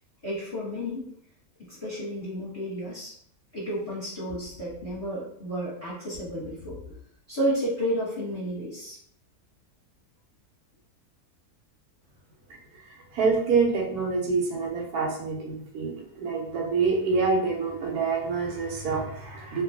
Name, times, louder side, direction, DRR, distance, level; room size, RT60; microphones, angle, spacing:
voice 1, 0.2-1.1 1.7-3.1 3.5-6.8 7.3-9.0, equal, 25° left, -9 dB, 0.9 m, -31 dB
voice 2, 12.9-19.6, right 4 dB, 85° right, 1 dB, 1.2 m, -26 dB
2.5 x 2.2 x 2.7 m, 0.67 s
omnidirectional pair, 1.6 m